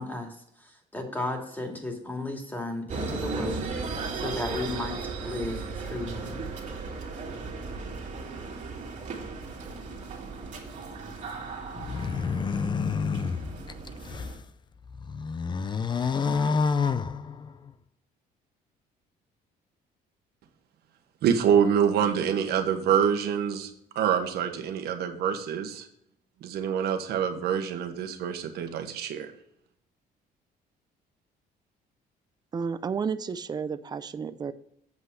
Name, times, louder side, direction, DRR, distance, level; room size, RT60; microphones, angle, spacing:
voice 1, 0.0-3.6 4.1-6.4, left 2 dB, 10° left, 2 dB, 2.4 m, -34 dB
sound 1, 2.9-14.4, right 4 dB, 45° right, 2.4 m, -36 dB
sound 2, 11.8-14.4 14.9-17.7, left 5 dB, 25° left, 0.5 m, -28 dB
voice 2, 21.2-23.7 23.9-25.9 26.4-29.3, right 8 dB, 70° right, 6 dB, 1.3 m, -26 dB
voice 3, 32.5-34.5, right 6 dB, 25° right, 12 dB, 0.5 m, -32 dB
8.0 x 5.5 x 6.6 m, 0.74 s
cardioid pair, 110°, 17 cm